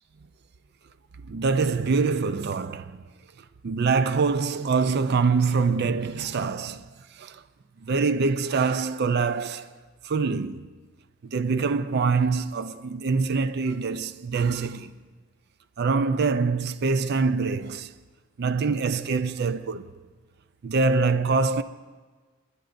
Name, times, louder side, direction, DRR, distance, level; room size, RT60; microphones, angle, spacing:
voice 1, 1.2-3.0 3.6-7.4 7.8-9.7 10.0-10.7 11.2-14.9 15.8-17.9 18.4-19.9 20.6-21.6, right 4 dB, 55° right, 0.4 m, -24 dB
29.5 x 10.5 x 2.6 m
head